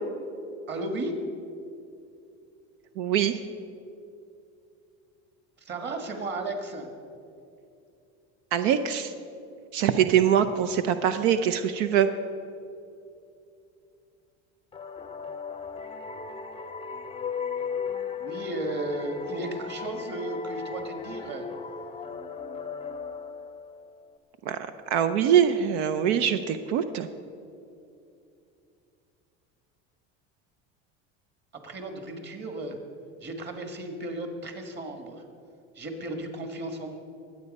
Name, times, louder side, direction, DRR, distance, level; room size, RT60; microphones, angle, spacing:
voice 1, 0.7-1.2 5.6-6.9 18.2-21.5 31.6-32.8 33.2-35.2 35.8-37.0, right 2 dB, 35° right, 5 dB, 1.8 m, -34 dB
voice 2, 3.0-3.4 8.5-9.1 9.7-12.1 24.5-24.6 24.9-27.1, right 9 dB, 85° right, 10 dB, 0.7 m, -23 dB
sound 1, 14.7-24.1, left 5 dB, 20° left, 0.5 m, -36 dB
22.0 x 8.3 x 5.4 m, 2.7 s
cardioid pair, 135°, 31 cm